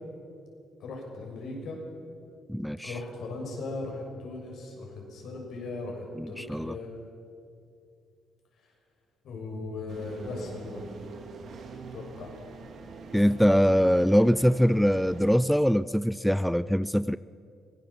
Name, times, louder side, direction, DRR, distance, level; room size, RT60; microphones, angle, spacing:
voice 1, 0.8-1.8 2.8-6.9 9.2-10.9 11.9-12.3, left 2 dB, 70° left, 0 dB, 6.4 m, -38 dB
voice 2, 2.5-3.0 6.1-6.8 13.1-17.2, equal, ahead, 16 dB, 0.4 m, -23 dB
sound 1, 9.9-15.4, right 4 dB, 65° right, 2.9 m, -44 dB
24.0 x 17.5 x 7.3 m, 2.4 s
cardioid pair, 90°, 0 cm